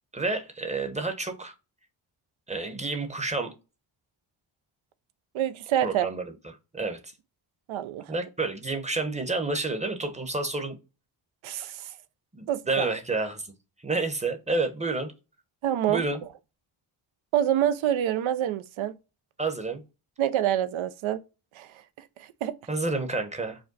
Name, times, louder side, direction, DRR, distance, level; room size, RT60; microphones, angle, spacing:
voice 1, 0.1-1.5 2.5-3.5 5.8-6.2 6.7-7.0 8.1-10.8 12.3-13.5 13.8-15.1 15.9-16.2 19.4-19.8 22.7-23.6, right 3 dB, 15° right, 0.8 m, -29 dB
voice 2, 5.3-6.1 7.7-8.1 11.4-11.9 12.5-12.9 15.6-16.0 17.3-18.9 20.2-21.2 21.6-21.7 22.2-22.6, right 11 dB, 75° right, 0.6 m, -26 dB
5.0 x 2.2 x 3.8 m
cardioid pair, 85°, 49 cm